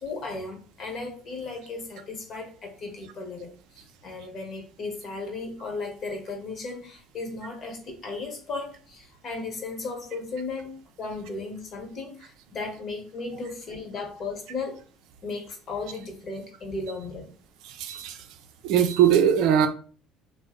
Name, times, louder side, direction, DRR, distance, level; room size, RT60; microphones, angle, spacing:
voice 1, 0.0-14.8 15.2-17.3, left 3 dB, 50° left, 3 dB, 1.0 m, -36 dB
voice 2, 17.7-18.2 18.6-19.7, right 9 dB, 70° right, 7 dB, 0.4 m, -20 dB
2.7 x 2.1 x 3.6 m, 0.41 s
hypercardioid pair, 65°, 0 cm